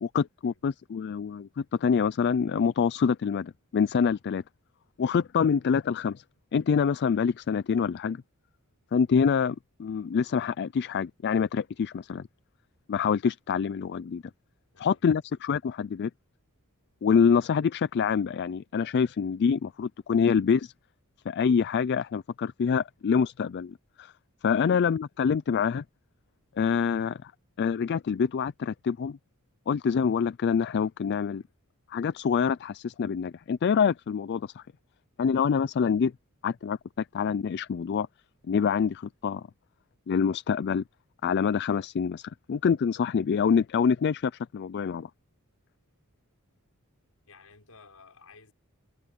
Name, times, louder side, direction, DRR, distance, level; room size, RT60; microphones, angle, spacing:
voice 1, 0.0-4.4 5.0-6.2 6.5-8.2 8.9-12.2 12.9-14.2 14.8-16.1 17.0-20.7 21.3-24.1 24.4-25.8 26.6-27.3 27.6-29.2 29.7-31.4 31.9-34.6 35.2-36.1 36.4-38.1 38.5-39.4 40.1-40.8 41.2-45.1, left 6 dB, 50° left, 0.3 m, -26 dB
voice 2, 47.2-48.5, left 4 dB, 75° left, 6.2 m, -55 dB
head